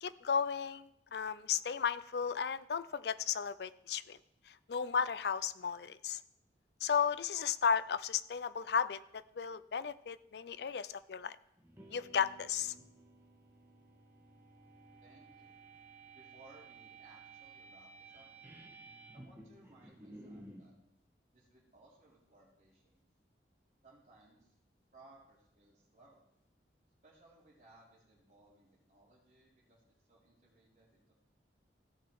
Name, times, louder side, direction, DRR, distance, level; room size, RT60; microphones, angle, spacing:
voice 1, 0.0-4.2 4.5-6.2 6.8-11.4 11.9-12.7, left 7 dB, 65° left, 14 dB, 0.4 m, -34 dB
sound 1, 11.6-20.7, right 3 dB, 10° right, 1.4 m, -55 dB
voice 2, 15.0-15.6 16.1-18.3 19.1-20.7 21.3-23.0 23.8-24.5 24.9-26.2 27.0-31.1, right 2 dB, 40° right, -5 dB, 3.9 m, -63 dB
16.0 x 6.1 x 4.8 m, 0.79 s
head